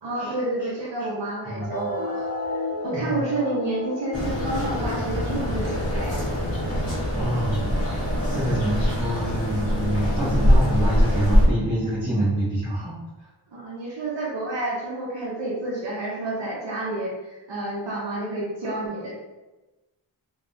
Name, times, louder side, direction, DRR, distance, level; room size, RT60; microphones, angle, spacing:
voice 1, 0.0-6.2 13.5-19.1, right 2 dB, 70° right, -5 dB, 0.7 m, -30 dB
sound 1, 1.6-8.6, left 3 dB, 50° left, 0.6 m, -34 dB
sound 2, 4.1-11.5, equal, 30° left, 1.1 m, -23 dB
voice 2, 7.2-7.7 8.0-12.9, right 1 dB, 15° right, -9 dB, 0.7 m, -26 dB
3.4 x 2.2 x 2.5 m, 1.1 s
wide cardioid pair, 75°, 46 cm